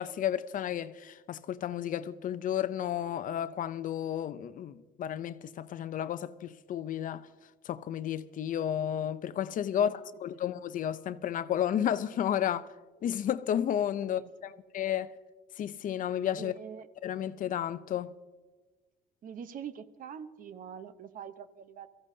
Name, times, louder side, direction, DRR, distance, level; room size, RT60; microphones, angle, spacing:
voice 1, 0.0-7.3 7.6-9.9 10.2-12.7 13.0-15.1 15.6-16.5 17.0-18.1, left 10 dB, 50° left, 0.6 m, -32 dB
voice 2, 16.3-16.9 19.2-21.9, right 8 dB, 55° right, 0.9 m, -44 dB
22.5 x 15.0 x 2.8 m
cardioid pair, 110°, 17 cm